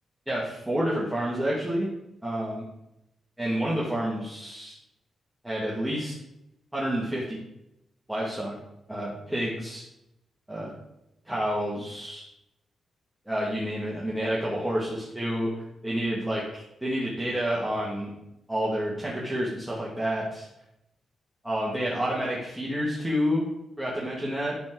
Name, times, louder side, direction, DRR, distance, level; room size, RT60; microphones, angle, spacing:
voice 1, 0.3-1.9 2.2-2.6 3.4-4.7 5.4-6.1 6.7-7.4 8.1-8.6 8.9-9.8 10.5-10.7 11.3-12.2 13.3-15.5 15.8-18.1 18.5-20.5 21.4-23.4 23.8-24.5, equal, 5° right, -6 dB, 1.9 m, -29 dB
11.5 x 4.3 x 4.6 m, 0.86 s
cardioid pair, 105°, 0 cm